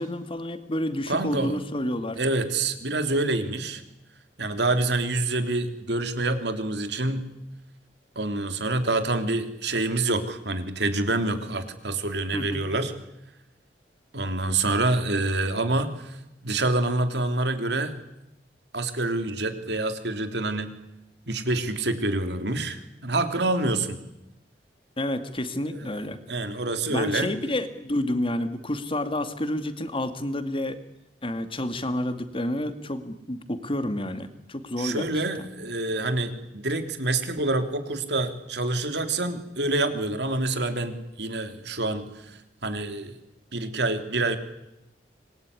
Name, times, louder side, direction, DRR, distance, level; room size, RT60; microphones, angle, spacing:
voice 1, 0.0-2.2 12.3-12.7 25.0-26.2 26.9-30.8 31.2-35.1 35.4-35.5, left 1 dB, 30° left, 10 dB, 2.1 m, -29 dB
voice 2, 1.1-1.6 2.2-3.8 4.4-7.3 8.1-12.9 14.1-16.2 16.4-17.9 18.7-20.7 21.3-24.0 25.7-25.9 26.3-27.3 34.8-43.1 43.5-44.4, right 2 dB, 70° right, 8 dB, 3.2 m, -27 dB
26.0 x 21.5 x 9.8 m, 0.88 s
head